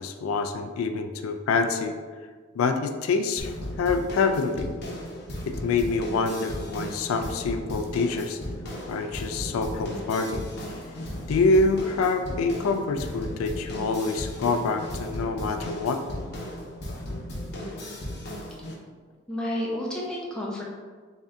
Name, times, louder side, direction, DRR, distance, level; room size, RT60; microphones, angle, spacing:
voice 1, 0.0-1.9 2.6-3.5 3.8-4.7 5.5-8.4 8.9-10.5 11.3-16.0, left 3 dB, 90° left, 7 dB, 0.3 m, -26 dB
sound 1, 3.4-18.7, equal, 50° left, 0.7 m, -36 dB
voice 2, 19.3-20.6, left 1 dB, 5° left, -5 dB, 0.6 m, -30 dB
3.5 x 2.7 x 3.3 m, 1.5 s
head